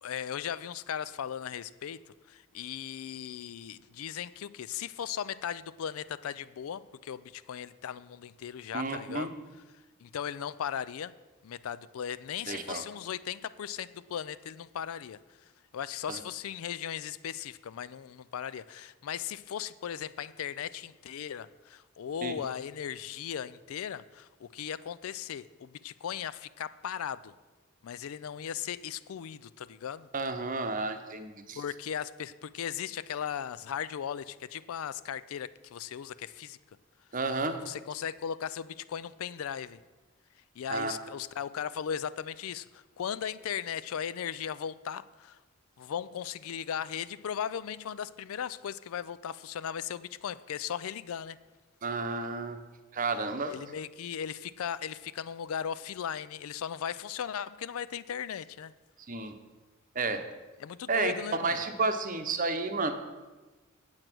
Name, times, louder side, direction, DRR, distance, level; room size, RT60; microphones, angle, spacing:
voice 1, 0.0-2.0 2.3-9.3 10.0-11.1 11.4-15.2 15.7-27.3 27.8-30.1 31.6-36.6 37.7-39.8 40.6-45.4 45.8-51.4 53.5-58.7 60.6-61.6, left 8 dB, 75° left, 17 dB, 0.4 m, -37 dB
voice 2, 8.7-9.3 12.5-12.8 16.1-16.2 22.2-22.3 30.1-31.6 37.1-37.6 40.7-40.9 51.8-52.6 52.9-53.5 59.1-59.3 59.9-60.2 60.9-62.9, right 3 dB, 40° right, 8 dB, 0.8 m, -31 dB
8.8 x 7.8 x 6.1 m, 1.2 s
head